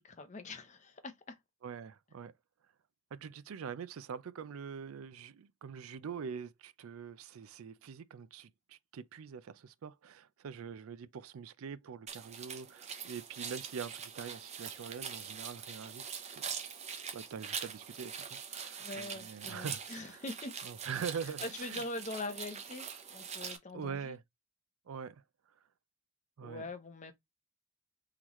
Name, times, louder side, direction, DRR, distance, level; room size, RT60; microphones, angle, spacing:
voice 1, 0.0-1.4 18.8-20.5 21.4-24.2 26.4-27.1, left 2 dB, 35° left, 0.7 m, -43 dB
voice 2, 1.6-2.3 3.1-16.5 17.1-20.2 20.6-21.8 23.7-24.2 24.9-25.2 26.4-26.6, right 6 dB, 75° right, 0.4 m, -44 dB
sound 1, 12.1-23.6, right 7 dB, 30° right, 0.7 m, -43 dB
3.9 x 3.0 x 3.0 m
head